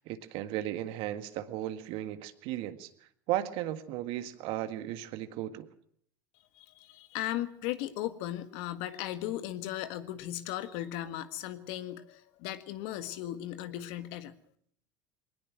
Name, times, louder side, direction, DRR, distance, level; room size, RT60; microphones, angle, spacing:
voice 1, 0.0-2.9 3.3-5.7, right 13 dB, 65° right, 10 dB, 1.8 m, -35 dB
voice 2, 6.5-14.3, left 13 dB, 65° left, 10 dB, 1.7 m, -37 dB
21.5 x 19.5 x 6.1 m, 0.64 s
hypercardioid pair, 80°, 10 cm